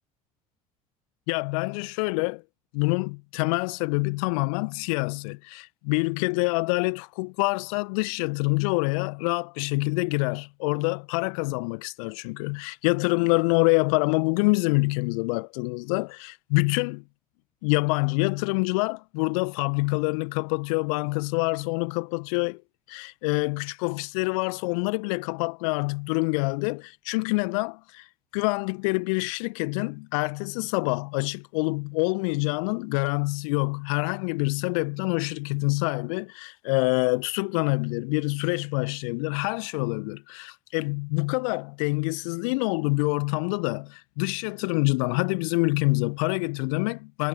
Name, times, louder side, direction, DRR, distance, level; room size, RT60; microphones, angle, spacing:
voice 1, 1.3-2.4 2.7-17.0 17.6-22.6 22.9-28.1 28.3-47.3, left 32 dB, 65° left, 1.4 m, -26 dB
figure-of-eight pair, 60°, 19 cm